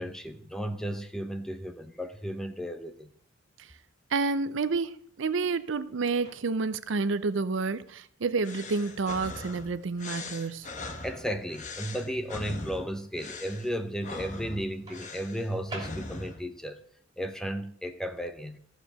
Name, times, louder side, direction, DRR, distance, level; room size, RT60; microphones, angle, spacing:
voice 1, 0.0-3.1 11.0-16.8 17.2-18.6, equal, 5° left, 0.7 m, -34 dB
voice 2, 4.1-10.7, right 4 dB, 65° right, 0.5 m, -29 dB
Microwave oven, 6.2-6.8 8.8-9.1 14.9-16.5, right 2 dB, 20° right, 2.8 m, -45 dB
sound 1, 8.4-16.4, left 3 dB, 35° left, 1.1 m, -41 dB
14.0 x 4.9 x 6.5 m
head